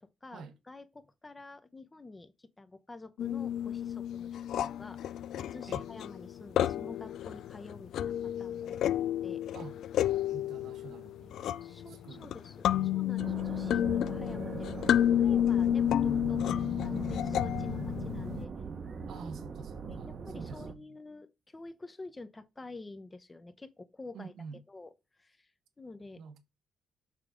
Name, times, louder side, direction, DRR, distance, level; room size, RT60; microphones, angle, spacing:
voice 1, 0.0-4.4 4.6-5.0 5.4-8.8 9.2-9.5 11.6-12.6 12.9-18.5 19.9-24.3 24.7-24.9 25.2-25.5 25.8-26.2, left 3 dB, 20° left, 0.8 m, -48 dB
sound 1, 3.2-18.4, left 11 dB, 70° left, 0.3 m, -31 dB
voice 2, 10.3-11.4 11.7-13.1 19.1-21.0 24.1-24.6 26.2-26.4, right 5 dB, 70° right, 1.1 m, -48 dB
sound 2, 13.2-20.7, right 5 dB, 40° right, 0.9 m, -40 dB
6.7 x 3.6 x 5.1 m
cardioid pair, 110°, 0 cm